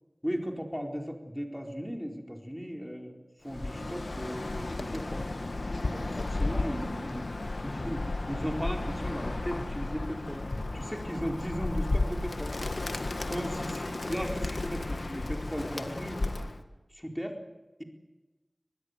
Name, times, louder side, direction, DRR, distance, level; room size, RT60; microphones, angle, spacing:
voice 1, 0.2-3.2 3.4-5.3 5.9-7.3 7.6-10.4 10.7-12.5 13.3-16.2 16.9-17.4, equal, ahead, 3 dB, 4.2 m, -36 dB
Bird, 3.5-16.6, left 2 dB, 90° left, 1.6 m, -33 dB
24.0 x 20.0 x 8.1 m, 1.1 s
wide cardioid pair, 50°, 0 cm